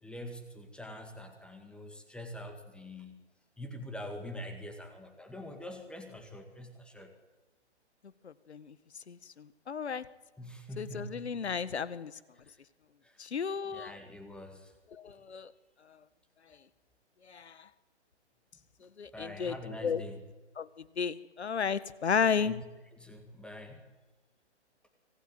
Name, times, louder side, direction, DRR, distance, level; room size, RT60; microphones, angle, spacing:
voice 1, 0.0-3.2 3.6-7.1 10.4-11.3 13.0-13.3 13.6-14.7 19.1-20.2 22.4-22.6 22.9-23.8, left 1 dB, 5° left, 5 dB, 2.1 m, -44 dB
voice 2, 8.2-8.7 9.1-10.0 10.8-12.1 13.2-13.9 14.9-15.5 17.3-17.6 19.0-19.5 19.8-20.0 20.6-22.6, left 6 dB, 70° left, 16 dB, 1.7 m, -33 dB
25.0 x 20.0 x 9.4 m, 1.2 s
figure-of-eight pair, 145°, 35 cm